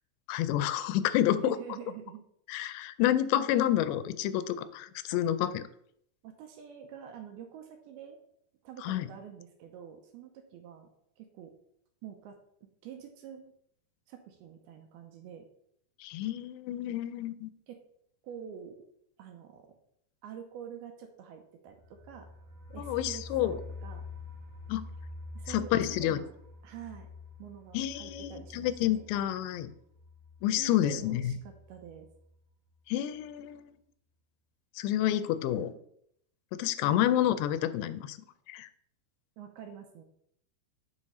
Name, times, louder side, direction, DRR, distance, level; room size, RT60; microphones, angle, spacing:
voice 1, 0.3-1.6 2.5-5.6 8.8-9.1 16.0-17.5 22.8-23.6 24.7-24.9 25.5-26.2 27.7-29.7 30.4-31.3 32.9-33.7 34.8-35.7 36.6-38.2 38.5-38.7, left 12 dB, 90° left, 13 dB, 2.8 m, -29 dB
voice 2, 1.4-2.2 5.1-5.2 6.2-8.2 8.6-10.9 11.2-11.5 12.0-12.4 12.8-13.5 14.1-15.5 17.7-17.8 18.2-18.8 19.2-19.8 20.2-22.3 22.7-24.1 25.4-26.3 26.6-27.1 27.4-29.1 30.6-32.1 35.5-35.8 36.9-37.0 39.4-40.0, right 9 dB, 80° right, 5 dB, 2.4 m, -46 dB
sound 1, 21.7-32.4 32.7-32.8 33.1-33.2, left 2 dB, 50° right, 2.4 m, -47 dB
6.4 x 5.0 x 5.5 m, 0.71 s
omnidirectional pair, 4.9 m